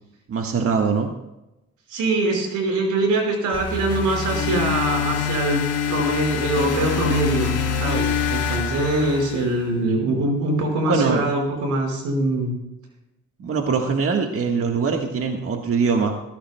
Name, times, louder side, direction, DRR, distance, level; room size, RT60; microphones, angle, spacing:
voice 1, 0.3-1.1 10.8-11.2 13.4-16.1, right 5 dB, 50° right, 2 dB, 1.6 m, -22 dB
voice 2, 1.9-5.6 5.9-12.6, right 2 dB, 90° right, 1 dB, 5.4 m, -23 dB
sound 1, 3.5-9.7, left 6 dB, 55° left, 3.0 m, -25 dB
20.0 x 15.0 x 2.3 m, 0.94 s
cardioid pair, 90°, 30 cm